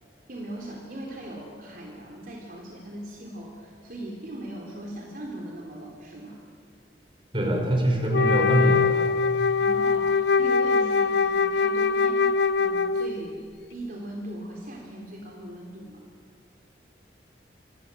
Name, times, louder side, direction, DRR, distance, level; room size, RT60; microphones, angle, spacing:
voice 1, 0.3-6.4 9.6-16.0, right 1 dB, 50° right, -1 dB, 3.7 m, -39 dB
voice 2, 7.3-9.1, right 1 dB, 30° right, 2 dB, 5.9 m, -23 dB
Wind instrument woodwind instrument, 8.1-13.3, left 5 dB, 70° left, 0.8 m, -23 dB
27.0 x 26.5 x 7.8 m, 2.1 s
head